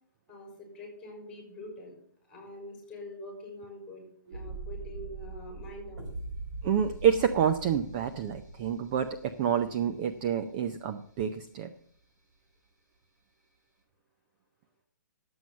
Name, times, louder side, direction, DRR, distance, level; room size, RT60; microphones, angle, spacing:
voice 1, 0.3-1.9 2.2-4.0 4.3-6.1, left 1 dB, 5° left, 1 dB, 4.4 m, -45 dB
sound 1, 4.3-11.1 11.4-11.5, right 3 dB, 55° right, 4.6 m, -43 dB
voice 2, 6.6-11.7, right 8 dB, 25° right, 9 dB, 0.5 m, -28 dB
11.0 x 7.9 x 7.2 m, 0.64 s
hypercardioid pair, 165°, 11 cm